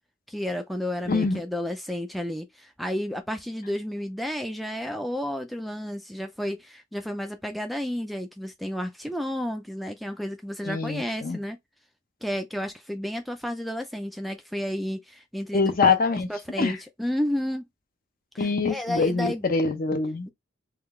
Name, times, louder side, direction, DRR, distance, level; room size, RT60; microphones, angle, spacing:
voice 1, 0.3-11.6 12.2-15.9 16.3-17.7 18.3-19.4, equal, ahead, 0.4 m, -31 dB
voice 2, 1.1-1.4 10.6-11.4 15.5-16.3 16.6-16.8 18.4-20.3, left 4 dB, 50° left, 0.7 m, -24 dB
3.7 x 2.3 x 3.1 m
head